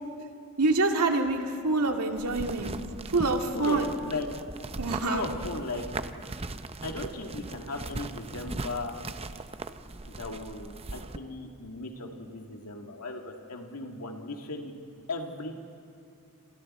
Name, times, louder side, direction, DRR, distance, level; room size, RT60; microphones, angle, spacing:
voice 1, 0.6-2.8 3.1-3.9 4.8-5.3, right 3 dB, 85° right, 3 dB, 2.1 m, -26 dB
sound 1, 2.2-11.2, right 2 dB, 25° right, 0.7 m, -39 dB
voice 2, 3.5-4.3 5.0-6.2 6.8-8.9 10.2-14.7 15.1-15.5, left 2 dB, 85° left, 3 dB, 2.1 m, -37 dB
28.0 x 27.0 x 4.3 m, 2.5 s
head